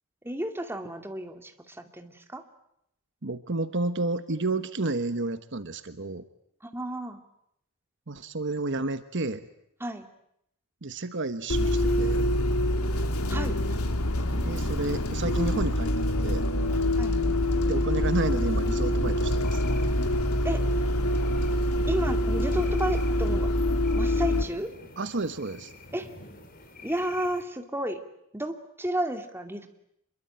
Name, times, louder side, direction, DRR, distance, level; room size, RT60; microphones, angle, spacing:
voice 1, 0.2-2.4 6.6-7.2 9.8-10.1 13.3-13.6 17.0-17.2 20.4-20.6 21.9-23.5 24.0-24.7 25.9-26.1 26.8-28.0 28.3-29.7, right 1 dB, 10° right, 5 dB, 2.5 m, -32 dB
voice 2, 3.2-6.2 8.1-9.5 10.8-12.3 14.4-16.5 17.6-19.6 25.0-25.7, right 2 dB, 55° right, 11 dB, 1.2 m, -31 dB
Bus, 11.5-24.4, left 1 dB, 75° left, 2.8 m, -25 dB
sound 1, 19.4-27.4, left 2 dB, 40° left, 4.3 m, -47 dB
26.5 x 22.5 x 9.1 m, 0.75 s
head